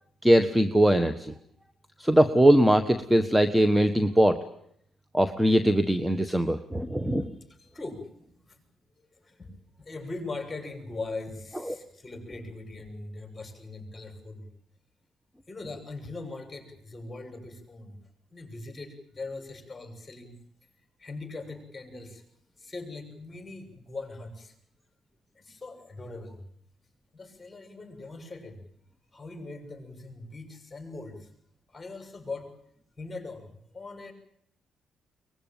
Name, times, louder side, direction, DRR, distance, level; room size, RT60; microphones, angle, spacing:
voice 1, 0.2-1.3 2.0-4.4 5.1-7.3 11.7-11.8, right 1 dB, 5° right, 10 dB, 1.3 m, -21 dB
voice 2, 7.0-8.6 9.2-14.5 15.5-18.0 18.3-20.4 21.0-22.2 22.6-24.5 25.4-26.4 27.1-28.6 29.1-31.3 31.7-32.5 33.0-34.1, left 3 dB, 20° left, 5 dB, 7.2 m, -41 dB
23.5 x 20.5 x 9.1 m, 0.70 s
cardioid pair, 90°, 0 cm